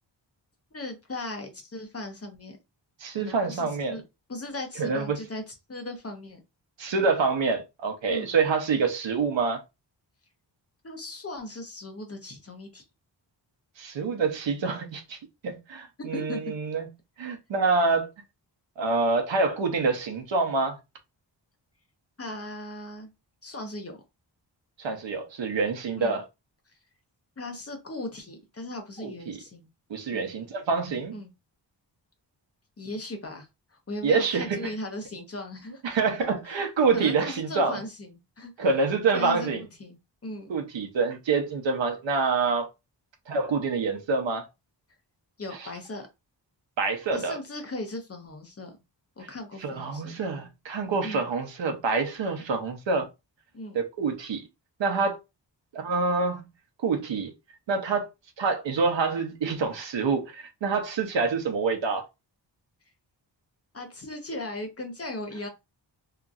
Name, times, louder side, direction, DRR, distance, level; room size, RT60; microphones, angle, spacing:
voice 1, 0.7-2.6 3.2-4.0 4.3-6.4 8.1-8.3 10.8-12.8 16.0-16.5 22.2-23.1 23.4-24.0 26.0-26.2 27.4-29.7 30.1-30.3 31.1-31.3 32.8-35.8 36.9-38.5 39.1-40.0 40.2-40.5 45.4-46.1 47.1-48.7 49.2-50.2 51.0-51.3 53.5-53.8 63.7-65.5, left 2 dB, 35° left, 0.8 m, -37 dB
voice 2, 3.0-4.0 4.8-5.2 6.8-9.6 13.8-15.2 15.4-16.9 17.2-18.1 18.8-20.8 24.8-26.3 29.0-29.4 29.9-31.2 34.0-34.7 35.8-37.8 38.6-39.6 40.5-42.7 43.3-44.5 46.8-47.4 49.6-53.1 53.7-54.4 54.8-55.2 55.7-56.4 56.8-57.3 57.7-58.1 58.4-62.1, right 4 dB, 80° right, 0.8 m, -26 dB
2.9 x 2.5 x 2.4 m
wide cardioid pair, 110°, 44 cm